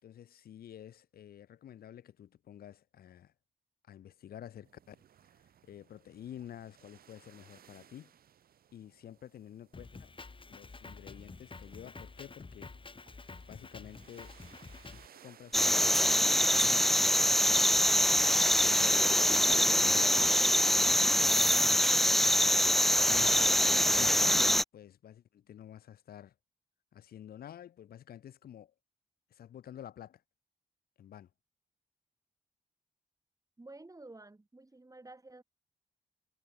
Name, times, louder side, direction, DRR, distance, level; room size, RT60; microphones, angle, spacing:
voice 1, 0.0-3.3 3.9-5.0 5.6-8.1 8.7-10.1 10.5-12.7 13.5-14.4 14.8-17.8 18.6-21.8 22.3-24.4 24.7-26.3 26.9-28.7 29.3-30.2 31.0-31.3, left 10 dB, 80° left, 3.2 m, -50 dB
sound 1, 4.6-18.8, right 9 dB, 75° right, 3.0 m, -61 dB
Drum kit, 9.7-15.1, left 3 dB, 35° left, 2.9 m, -49 dB
sound 2, 15.5-24.6, equal, ahead, 0.4 m, -25 dB
voice 2, 33.6-35.4, right 2 dB, 20° right, 4.6 m, -51 dB
cardioid pair, 55°, 16 cm